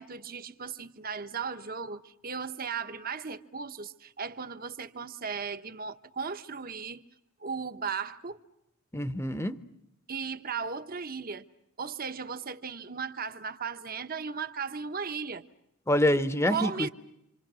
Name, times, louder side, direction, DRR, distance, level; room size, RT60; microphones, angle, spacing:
voice 1, 0.0-7.0 7.4-8.4 10.1-11.5 11.8-15.4 16.5-16.9, right 5 dB, 45° right, 1.1 m, -36 dB
voice 2, 8.9-9.6 15.9-16.9, left 1 dB, 15° left, 0.9 m, -26 dB
27.5 x 26.5 x 6.3 m
head